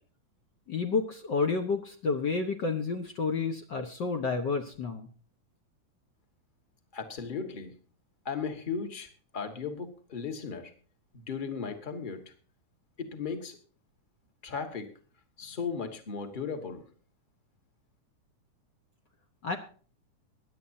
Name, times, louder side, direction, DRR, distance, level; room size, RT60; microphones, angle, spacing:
voice 1, 0.7-5.1 19.4-19.6, left 4 dB, 85° left, 4 dB, 0.9 m, -30 dB
voice 2, 6.9-7.7 8.2-9.1 9.3-10.7 11.1-12.2 13.0-13.6 14.4-14.9 15.4-16.8, left 5 dB, 25° left, 6 dB, 1.0 m, -36 dB
22.5 x 10.5 x 2.7 m, 0.40 s
omnidirectional pair, 3.7 m